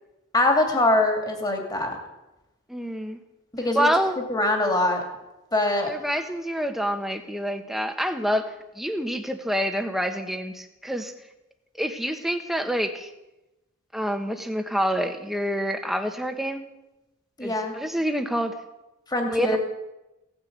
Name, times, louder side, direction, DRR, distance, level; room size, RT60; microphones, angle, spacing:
voice 1, 0.3-2.0 3.5-3.9 4.3-5.0 5.5-5.9 17.4-17.7 19.1-19.6, left 2 dB, 20° left, 3 dB, 2.7 m, -23 dB
voice 2, 2.7-3.2 3.7-4.2 5.9-11.1 11.8-13.1 13.9-16.7 17.4-18.5 19.3-19.6, equal, ahead, 6 dB, 1.3 m, -27 dB
17.0 x 9.7 x 8.1 m, 0.96 s
head